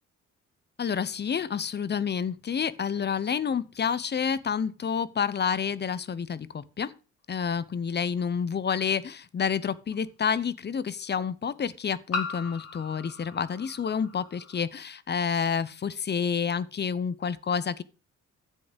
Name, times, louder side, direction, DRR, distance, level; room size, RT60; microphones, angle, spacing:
voice 1, 0.8-6.9 7.3-17.8, left 7 dB, 35° left, 0.8 m, -29 dB
sound 1, 8.2-8.3 9.9-10.0 12.1-14.6, left 4 dB, 55° left, 2.3 m, -37 dB
10.0 x 7.7 x 5.1 m
cardioid pair, 90°, 30 cm